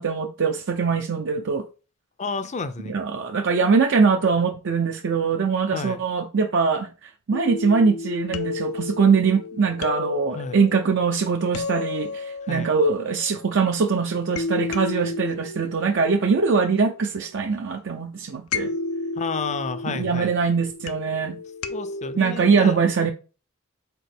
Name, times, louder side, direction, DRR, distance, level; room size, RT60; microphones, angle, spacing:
voice 1, 0.0-1.7 2.9-18.7 19.9-21.4 22.2-23.1, right 5 dB, 60° right, 0.5 m, -22 dB
voice 2, 2.2-3.0 5.7-6.0 10.3-10.6 12.5-12.7 19.2-20.3 21.7-22.8, left 4 dB, 35° left, 0.5 m, -31 dB
sound 1, 7.3-13.8 14.4-17.4 18.5-22.4, left 4 dB, 85° left, 0.6 m, -33 dB
4.6 x 4.1 x 5.1 m
head